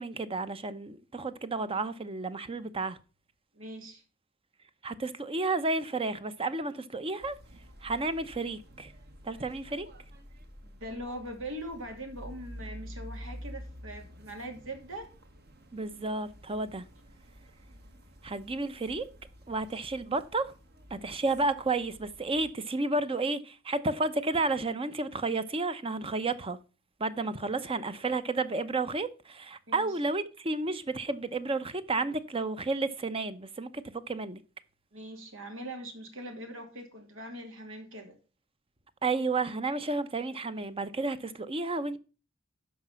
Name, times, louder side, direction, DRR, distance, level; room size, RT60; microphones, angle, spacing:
voice 1, 0.0-3.0 4.8-7.3 7.8-8.9 9.2-9.9 15.7-16.8 18.2-19.1 19.5-20.5 20.9-26.6 27.0-34.4 39.0-42.0, right 3 dB, 30° right, 0.7 m, -31 dB
voice 2, 3.5-4.0 10.6-15.1 29.7-30.0 34.9-38.1, right 1 dB, 85° right, 2.6 m, -42 dB
sound 1, 7.2-22.5, equal, 55° right, 1.6 m, -49 dB
12.0 x 5.0 x 5.6 m
head